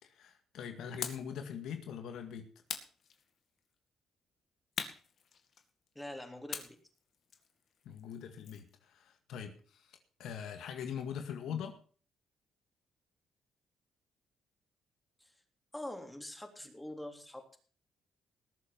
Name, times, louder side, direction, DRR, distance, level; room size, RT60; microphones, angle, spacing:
voice 1, 0.0-2.5 7.9-11.8, left 8 dB, 80° left, 6 dB, 2.0 m, -42 dB
sound 1, 1.0-1.4 2.7-3.6 4.8-5.9 6.5-8.7, left 7 dB, 60° left, 2.2 m, -43 dB
voice 2, 6.0-6.8 11.5-11.6 15.2-15.3 15.7-17.6, left 1 dB, 10° left, 4 dB, 3.6 m, -45 dB
19.5 x 7.3 x 6.1 m, 0.43 s
cardioid pair, 90°, 0 cm